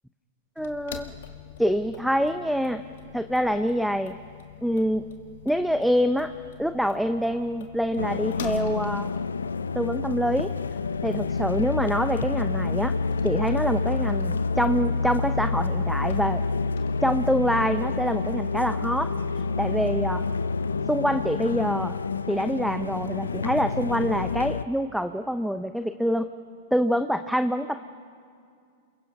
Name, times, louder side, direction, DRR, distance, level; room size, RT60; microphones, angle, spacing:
sound 1, 0.6-18.5, left 9 dB, 70° left, 2.0 m, -45 dB
voice 1, 0.6-1.1 1.6-2.8 3.1-4.2 4.6-5.1 5.5-6.3 6.6-9.1 9.7-10.5 11.0-12.9 13.2-16.4 17.0-19.1 19.6-20.2 20.9-22.0 22.3-26.3 26.7-27.7, equal, ahead, 9 dB, 0.7 m, -25 dB
sound 2, 8.0-24.6, left 4 dB, 90° left, 0.6 m, -28 dB
28.5 x 22.0 x 5.4 m, 2.3 s
hypercardioid pair, 105°, 0 cm